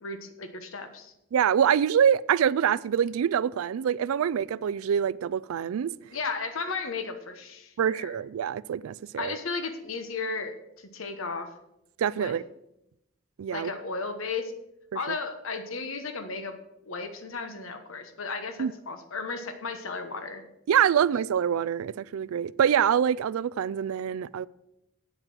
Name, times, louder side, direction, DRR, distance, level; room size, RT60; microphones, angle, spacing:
voice 1, 0.0-1.1 6.1-8.1 9.2-11.5 12.2-12.4 13.5-14.5 14.9-16.5 16.8-20.4, left 4 dB, 75° left, 1.1 m, -34 dB
voice 2, 1.3-5.9 7.8-9.4 12.0-12.4 13.4-13.7 15.1-15.2 18.6-18.7 20.7-24.5, right 8 dB, 85° right, 0.3 m, -25 dB
9.1 x 7.8 x 6.1 m
head